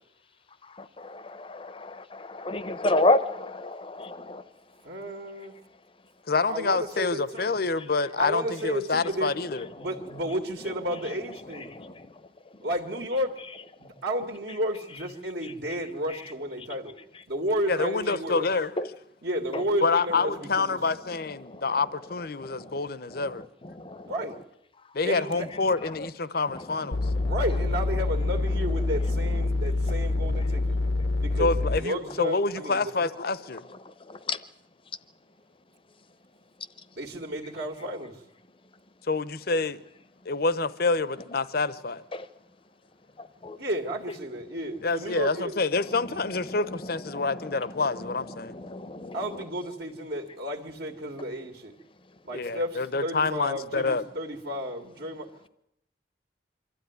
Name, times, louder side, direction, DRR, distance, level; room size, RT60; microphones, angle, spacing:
voice 1, 1.0-4.4 11.7-11.9 23.8-24.0 34.3-34.4 42.1-42.2 43.4-43.6 47.1-47.2 48.6-49.2, left 2 dB, 30° left, 0.8 m, -28 dB
voice 2, 4.8-5.6 6.5-7.5 8.2-9.3 9.8-11.7 12.6-13.4 13.8-16.9 17.3-18.5 19.2-20.8 24.0-24.4 25.0-25.5 27.3-30.8 31.2-32.8 37.0-38.2 43.6-45.5 49.1-51.7 52.2-55.5, equal, 65° right, 2.0 m, -32 dB
voice 3, 6.3-9.7 17.7-18.7 19.8-23.4 24.9-27.0 31.4-33.6 39.1-39.8 40.2-42.0 44.8-48.5 52.3-54.0, left 3 dB, 60° left, 0.9 m, -27 dB
sound 1, 26.9-31.8, left 2 dB, 80° left, 1.0 m, -26 dB
25.0 x 13.0 x 9.5 m
head